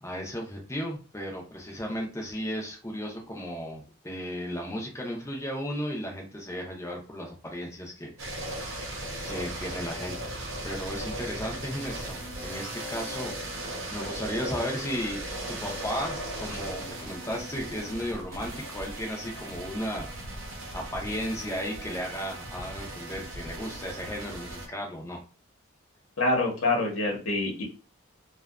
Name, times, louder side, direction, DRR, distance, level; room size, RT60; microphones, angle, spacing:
voice 1, 0.0-8.5 9.3-20.3 20.7-25.2, equal, 15° left, 0 dB, 0.5 m, -35 dB
sound 1, 8.2-24.7, right 1 dB, 65° right, 0.7 m, -37 dB
voice 2, 26.2-27.6, left 2 dB, 80° left, -1 dB, 0.8 m, -26 dB
2.6 x 2.2 x 2.3 m, 0.34 s
head